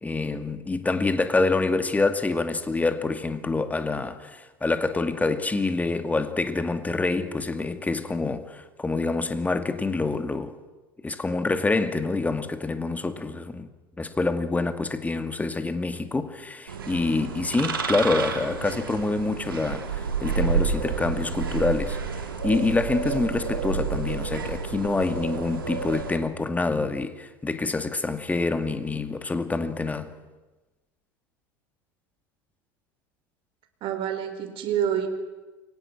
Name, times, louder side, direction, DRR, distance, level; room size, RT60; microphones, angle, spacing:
voice 1, 0.0-10.6 11.0-13.7 14.0-30.1, left 3 dB, 15° left, 2.3 m, -26 dB
sound 1, 16.7-26.2, right 5 dB, 85° right, 3.1 m, -30 dB
voice 2, 33.8-35.1, right 9 dB, 50° right, 4.7 m, -27 dB
29.0 x 24.0 x 6.1 m
hypercardioid pair, 80°, 11 cm